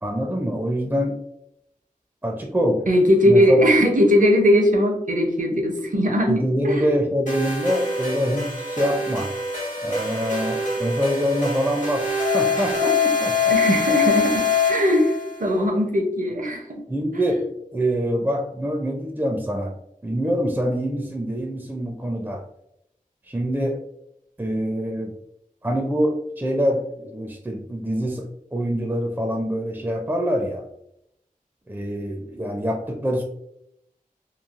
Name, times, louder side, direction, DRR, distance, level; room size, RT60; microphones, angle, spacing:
voice 1, 0.0-1.2 2.2-2.9 3.2-3.6 6.3-9.3 9.8-13.5 16.9-19.7 20.0-22.4 23.2-23.8 24.4-25.2 25.6-30.6 31.7-33.2, equal, 15° right, 2 dB, 0.4 m, -25 dB
voice 2, 2.9-6.9 13.5-16.8 17.1-17.3, equal, 65° right, 2 dB, 0.6 m, -19 dB
sound 1, 7.3-15.4, left 4 dB, 60° left, 0.9 m, -24 dB
3.1 x 2.3 x 2.4 m, 0.77 s
wide cardioid pair, 45°, 15 cm